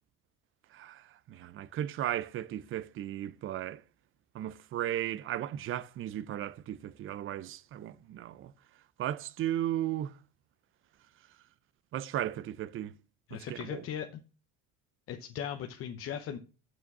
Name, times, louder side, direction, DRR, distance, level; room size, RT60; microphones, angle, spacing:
voice 1, 0.7-3.8 4.3-8.5 9.0-10.2 11.9-12.9 13.3-13.8, right 12 dB, 40° right, 0.5 m, -36 dB
voice 2, 13.3-14.1 15.1-16.4, left 9 dB, 40° left, 0.9 m, -38 dB
6.8 x 6.3 x 5.9 m
cardioid pair, 120°, 33 cm